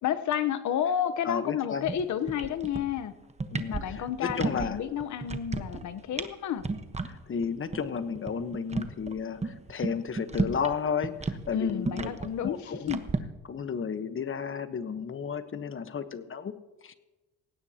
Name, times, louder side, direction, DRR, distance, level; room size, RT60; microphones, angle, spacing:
voice 1, 0.0-3.1 3.7-6.6 11.5-13.0, left 9 dB, 70° left, 12 dB, 1.0 m, -31 dB
voice 2, 1.2-1.9 3.5-4.8 7.0-12.1 12.4-13.0 13.4-16.5 16.8-16.9, left 6 dB, 45° left, 10 dB, 1.2 m, -33 dB
sound 1, 1.8-2.0 2.3-3.0 3.3-4.7 5.0-5.8 6.1-6.3 6.6-7.1 7.4-7.5 7.7-7.8 8.1-10.7 11.0-13.2, right 3 dB, 20° right, 1.2 m, -32 dB
18.5 x 16.5 x 2.9 m, 1.1 s
cardioid pair, 90°, 30 cm